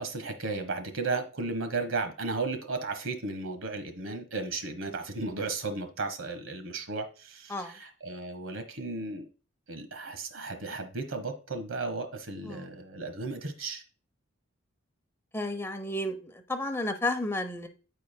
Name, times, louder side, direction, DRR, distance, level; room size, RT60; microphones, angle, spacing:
voice 1, 0.0-9.2 9.7-13.8, right 3 dB, 75° right, 1.3 m, -34 dB
voice 2, 15.3-17.7, left 1 dB, 10° left, 0.8 m, -32 dB
14.0 x 4.7 x 2.2 m
head